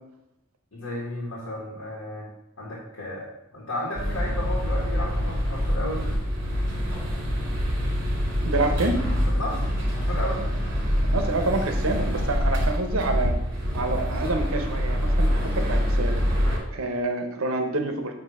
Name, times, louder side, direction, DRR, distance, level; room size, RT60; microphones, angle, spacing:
voice 1, 0.7-2.3 2.6-6.1 9.3-10.5, left 1 dB, 85° left, -4 dB, 1.6 m, -33 dB
sound 1, 4.0-16.6, equal, 55° right, 2.3 m, -25 dB
voice 2, 8.4-9.0 11.0-13.3 13.7-16.2 16.7-18.1, right 2 dB, 80° right, 5 dB, 0.9 m, -27 dB
8.0 x 2.8 x 5.4 m, 0.85 s
head